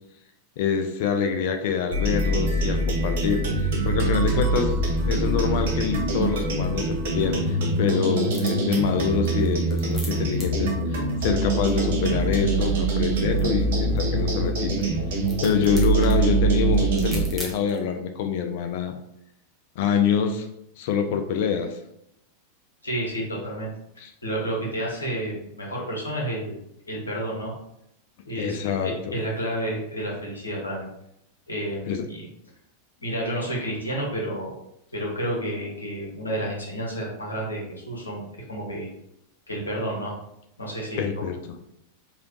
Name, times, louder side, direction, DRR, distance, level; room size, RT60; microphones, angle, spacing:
voice 1, 0.6-14.7 15.4-18.9 19.8-20.5 20.8-21.8 24.0-24.1 28.4-29.2 31.9-32.1 41.0-41.4, left 7 dB, 50° left, 6 dB, 0.3 m, -26 dB
sound 1, 1.9-17.3, right 2 dB, 55° right, 0.7 m, -24 dB
sound 2, 8.2-17.9, right 1 dB, 10° right, 0.9 m, -44 dB
voice 2, 22.8-23.7 24.2-26.5 26.9-27.5 28.2-30.9 31.5-32.3 33.0-34.6 34.9-38.9 39.5-40.2 40.6-41.2, right 1 dB, 75° left, -2 dB, 0.9 m, -30 dB
3.3 x 2.8 x 2.6 m, 0.79 s
figure-of-eight pair, 90°, 0 cm